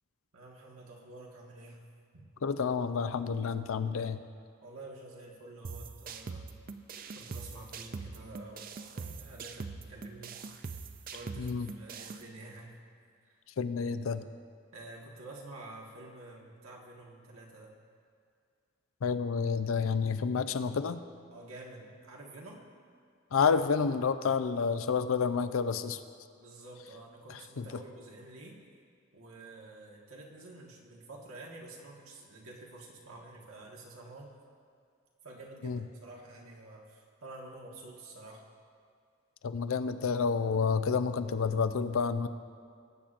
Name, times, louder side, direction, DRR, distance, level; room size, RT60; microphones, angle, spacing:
voice 1, 0.3-1.8 2.1-2.2 4.6-6.5 7.1-8.7 8.9-10.7 11.1-12.7 13.2-13.3 14.7-17.7 19.0-19.1 21.3-22.6 24.8-24.9 26.4-28.6 29.1-34.3 35.2-38.4, right 2 dB, 85° right, -1 dB, 1.5 m, -49 dB
voice 2, 2.4-4.2 11.4-11.7 13.6-14.2 19.0-21.0 23.3-26.0 27.3-27.7 35.6-35.8 39.4-42.3, left 5 dB, 75° left, 11 dB, 0.5 m, -29 dB
sound 1, 5.6-12.2, right 4 dB, 40° right, 0.4 m, -43 dB
18.0 x 8.6 x 2.5 m, 2.3 s
head